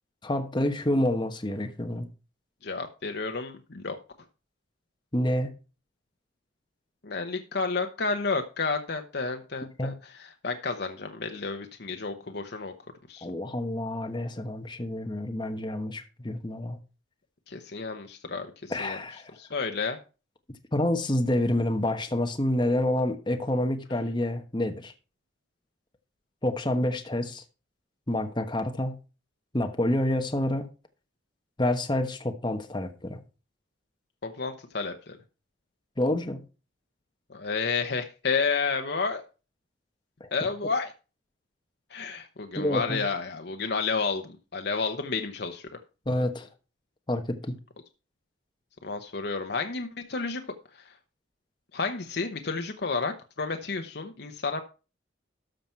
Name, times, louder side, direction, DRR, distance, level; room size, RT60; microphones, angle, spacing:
voice 1, 0.2-2.1 5.1-5.5 9.8-9.9 13.2-16.8 18.7-19.3 20.7-24.9 26.4-27.4 28.1-29.0 29.5-30.7 31.6-33.2 36.0-36.4 40.2-40.3 42.5-43.0 46.1-46.5 47.1-47.6, left 1 dB, 25° left, 1.2 m, -28 dB
voice 2, 2.6-4.0 7.0-12.7 13.1-13.3 17.5-19.0 19.4-20.0 34.2-35.2 37.3-39.2 40.3-40.9 41.9-45.8 48.8-50.4 50.7-50.9 51.7-54.6, left 4 dB, 60° left, 0.9 m, -31 dB
13.0 x 5.8 x 4.5 m
head